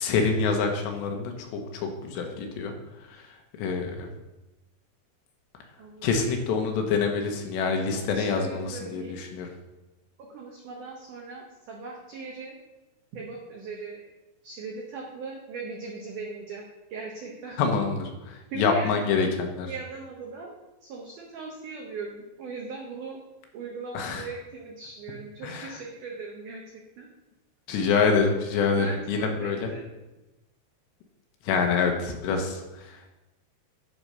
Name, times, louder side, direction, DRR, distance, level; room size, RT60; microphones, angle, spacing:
voice 1, 0.0-2.7 3.1-3.2 3.6-4.1 6.0-9.5 17.6-19.7 23.9-24.3 25.4-25.8 27.7-29.7 31.4-33.0, left 5 dB, 80° left, 3 dB, 3.1 m, -26 dB
voice 2, 8.0-9.2 10.2-12.5 13.1-14.0 14.4-16.6 16.9-17.6 18.5-19.1 19.6-23.2 23.5-26.6 27.0-27.1 28.8-29.8, right 4 dB, 85° right, -1 dB, 1.8 m, -39 dB
10.5 x 4.4 x 5.4 m, 1.0 s
omnidirectional pair, 5.1 m